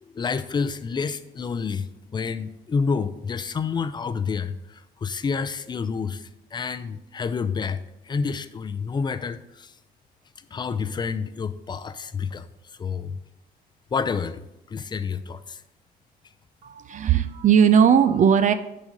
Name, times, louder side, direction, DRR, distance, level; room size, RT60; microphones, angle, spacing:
voice 1, 0.0-9.7 10.5-12.5 12.8-13.2 13.9-15.6, left 5 dB, 25° left, 12 dB, 0.5 m, -29 dB
voice 2, 16.6-18.5, right 8 dB, 50° right, 10 dB, 0.5 m, -18 dB
10.0 x 4.1 x 5.2 m, 0.91 s
cardioid pair, 115°, 17 cm